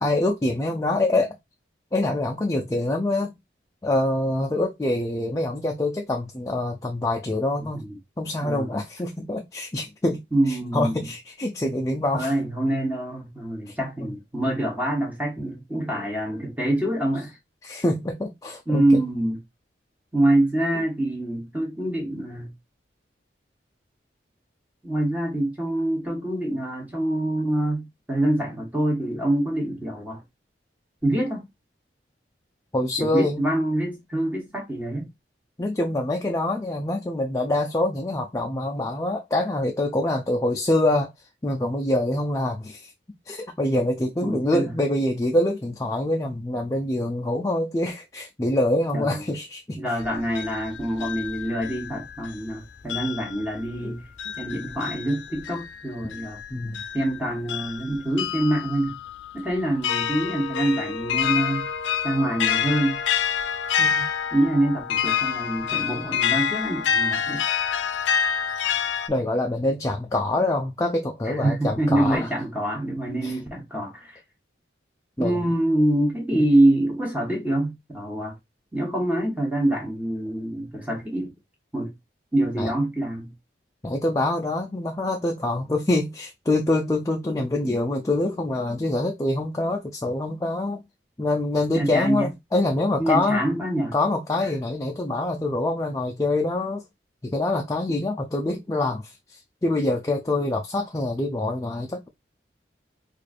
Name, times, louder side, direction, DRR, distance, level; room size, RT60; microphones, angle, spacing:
voice 1, 0.0-1.3 1.9-3.3 3.8-7.8 8.2-10.2 10.5-12.3 13.7-13.8 14.0-14.1 17.6-19.0 32.7-33.5 35.6-41.1 41.4-42.9 43.3-49.8 53.8-53.9 56.5-56.8 63.8-64.1 69.1-72.3 73.2-73.4 75.2-75.5 76.3-76.4 82.6-82.7 83.8-90.8 91.2-93.4 93.9-96.8 97.2-102.1, left 2 dB, 15° left, 0.3 m, -25 dB
voice 2, 8.4-8.8 10.3-11.0 12.1-17.3 18.7-19.4 20.1-22.5 24.8-30.2 31.0-31.5 33.0-35.1 44.2-44.7 48.9-49.2 49.8-54.0 54.4-56.4 56.9-59.0 59.3-61.7 62.0-63.0 64.3-67.4 71.2-74.2 75.2-78.3 78.7-81.3 81.7-81.9 82.3-83.3 91.7-92.3 93.0-93.9, right 1 dB, 10° right, 0.9 m, -25 dB
sound 1, 50.0-52.5 52.9-69.1, left 7 dB, 85° left, 0.5 m, -28 dB
4.7 x 2.4 x 2.4 m
head